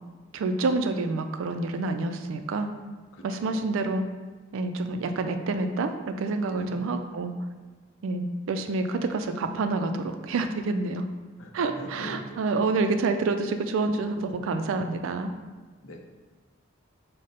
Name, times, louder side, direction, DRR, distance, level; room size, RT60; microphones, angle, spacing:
voice 1, 0.3-2.7 3.2-4.0 4.5-7.3 8.0-11.0 11.5-15.3, right 3 dB, 70° right, 8 dB, 0.3 m, -28 dB
voice 2, 6.5-7.0 11.4-11.5 11.7-12.4 15.8-16.1, left 1 dB, 70° left, 3 dB, 0.5 m, -41 dB
5.0 x 2.1 x 4.0 m, 1.4 s
head